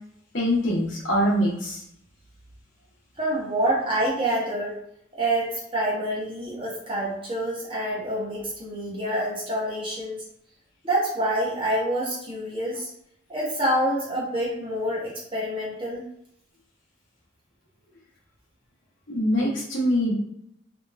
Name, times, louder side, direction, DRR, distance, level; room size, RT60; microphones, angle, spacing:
voice 1, 0.3-1.8 19.1-20.1, equal, 65° left, -3 dB, 0.8 m, -23 dB
voice 2, 3.2-4.8 5.1-10.2 10.8-12.9 13.3-16.0, right 1 dB, 25° right, -5 dB, 0.8 m, -27 dB
2.9 x 2.1 x 2.3 m, 0.73 s
head